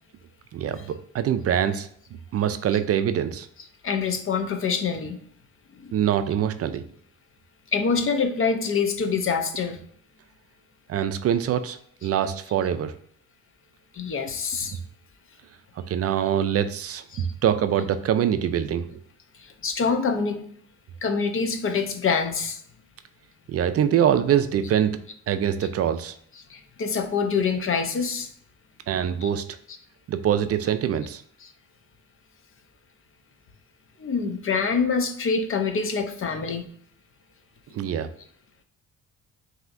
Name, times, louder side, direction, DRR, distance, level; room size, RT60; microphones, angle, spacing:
voice 1, 0.5-1.9 2.3-3.5 5.9-6.8 10.9-12.9 15.9-19.0 23.5-25.0 25.3-26.1 28.9-29.5 30.1-31.2 37.7-38.1, right 9 dB, 50° right, 10 dB, 0.4 m, -24 dB
voice 2, 3.8-5.2 5.7-5.9 7.7-9.8 13.9-14.8 17.1-17.3 19.3-20.4 21.0-22.6 26.4-28.3 29.2-29.3 31.4-31.5 34.0-36.7, left 5 dB, 45° left, 7 dB, 0.7 m, -26 dB
5.5 x 2.8 x 2.5 m, 0.62 s
cardioid pair, 90°, 30 cm